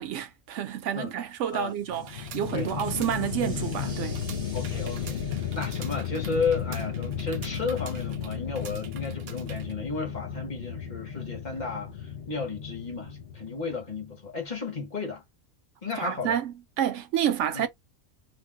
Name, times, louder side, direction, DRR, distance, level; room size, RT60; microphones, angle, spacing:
voice 1, 0.0-4.2 16.0-17.7, right 9 dB, 70° right, 0.8 m, -29 dB
sound 1, 1.4-7.3, right 3 dB, 35° right, 0.6 m, -51 dB
sound 2, 1.8-14.2, left 8 dB, 60° left, 0.6 m, -34 dB
sound 3, 1.9-9.7, right 9 dB, 90° right, 1.0 m, -47 dB
voice 2, 4.5-5.2 5.5-15.2 15.8-16.4 17.5-17.7, left 4 dB, 35° left, 1.1 m, -33 dB
2.5 x 2.2 x 3.4 m
omnidirectional pair, 1.5 m